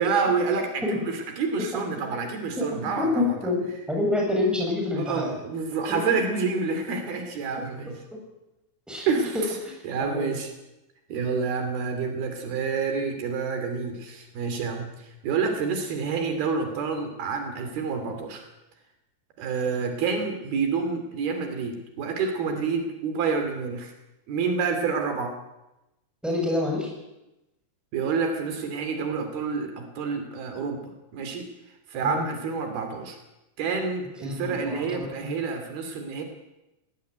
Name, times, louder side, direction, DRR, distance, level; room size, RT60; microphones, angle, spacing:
voice 1, 0.0-3.3 5.0-7.9 9.1-9.5 9.8-10.5 11.1-18.5 19.4-23.9 24.3-25.3 27.9-31.5 31.9-33.2 33.6-36.2, right 5 dB, 80° right, 6 dB, 4.6 m, -28 dB
voice 2, 2.6-5.3 5.9-6.0 8.1-8.2 8.9-10.3 26.2-26.9 32.0-32.3 34.2-35.3, left 2 dB, ahead, -1 dB, 7.4 m, -28 dB
19.5 x 18.5 x 9.3 m, 0.95 s
omnidirectional pair, 4.3 m